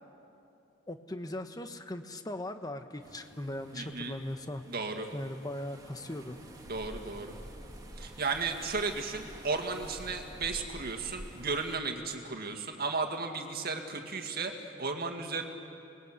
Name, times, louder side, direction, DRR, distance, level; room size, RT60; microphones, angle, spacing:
voice 1, 0.9-4.6 5.1-6.4, left 1 dB, 20° left, 7 dB, 1.1 m, -39 dB
sound 1, 3.0-11.8, right 1 dB, 20° right, 2.3 m, -49 dB
voice 2, 3.7-4.2 4.7-5.1 6.7-7.3 8.0-15.5, right 4 dB, 50° right, 3 dB, 2.2 m, -34 dB
29.5 x 21.0 x 8.2 m, 2.7 s
head